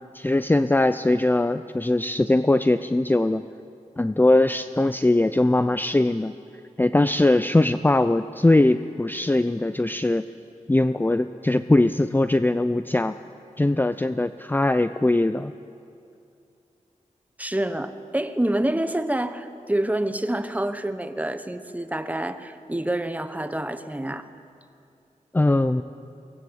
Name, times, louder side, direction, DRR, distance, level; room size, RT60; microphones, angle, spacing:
voice 1, 0.1-3.4 4.0-6.3 6.8-10.3 10.7-13.1 13.6-15.5 25.3-25.8, left 2 dB, 15° left, 11 dB, 0.5 m, -21 dB
voice 2, 17.4-24.3, right 1 dB, 10° right, 10 dB, 1.2 m, -27 dB
23.5 x 19.0 x 8.0 m, 2.5 s
wide cardioid pair, 70°, 13 cm